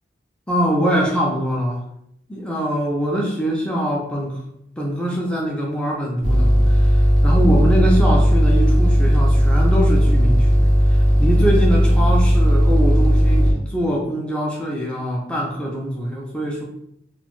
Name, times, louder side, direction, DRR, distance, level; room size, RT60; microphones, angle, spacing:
voice 1, 0.5-1.8 2.3-4.4 4.8-16.6, equal, 5° left, -2 dB, 0.4 m, -23 dB
sound 1, 6.2-13.5, equal, 80° left, 0.7 m, -15 dB
2.5 x 2.3 x 3.0 m, 0.75 s
head